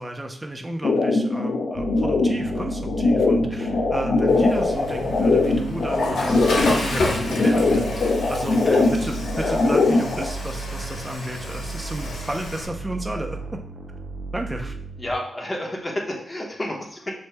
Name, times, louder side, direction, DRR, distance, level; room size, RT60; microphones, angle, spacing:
voice 1, 0.0-13.6 14.3-14.8, right 1 dB, 15° right, 3 dB, 0.6 m, -32 dB
sound 1, 0.8-10.3, left 3 dB, 60° left, 0.6 m, -21 dB
sound 2, 1.7-15.1, right 3 dB, 70° right, 0.4 m, -35 dB
Water / Toilet flush, 4.3-12.7, left 2 dB, 85° left, 1.0 m, -31 dB
voice 2, 8.6-9.6 15.0-17.1, left 1 dB, 25° left, -1 dB, 1.1 m, -31 dB
6.2 x 3.1 x 2.2 m, 0.67 s
cardioid pair, 75°, 0 cm